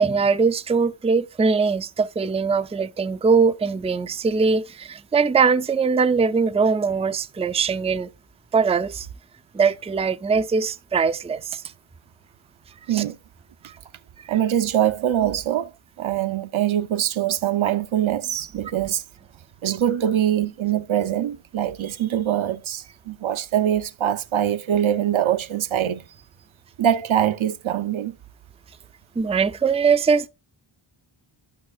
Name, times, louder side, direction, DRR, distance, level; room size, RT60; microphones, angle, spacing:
voice 1, 0.0-8.1 8.5-9.1 9.5-11.6 12.9-13.0 14.2-14.4 29.2-30.3, right 5 dB, 15° right, 0.4 m, -21 dB
voice 2, 14.3-15.7 16.0-19.0 19.6-26.0 26.8-28.1, right 10 dB, 75° right, 0.6 m, -23 dB
12.0 x 5.6 x 2.3 m
wide cardioid pair, 90°, 49 cm